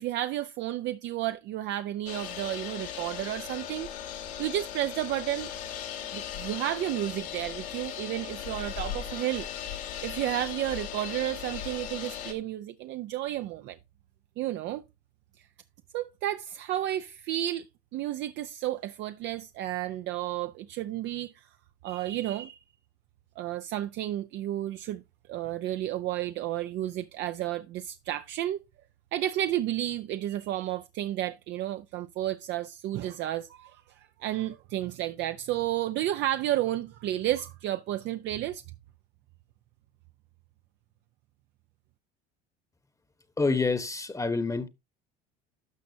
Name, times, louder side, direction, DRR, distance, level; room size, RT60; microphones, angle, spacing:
voice 1, 0.0-3.9 4.4-5.5 6.1-9.5 10.0-13.8 14.4-14.8 15.9-17.7 17.9-21.4 21.8-22.6 23.4-25.0 25.3-28.6 29.1-38.6, right 13 dB, 60° right, 0.6 m, -32 dB
sound 1, 2.1-12.3, left 9 dB, 80° left, 1.9 m, -38 dB
voice 2, 43.4-44.7, left 3 dB, 15° left, 1.0 m, -27 dB
12.0 x 6.1 x 2.7 m
supercardioid pair, 90°, 21 cm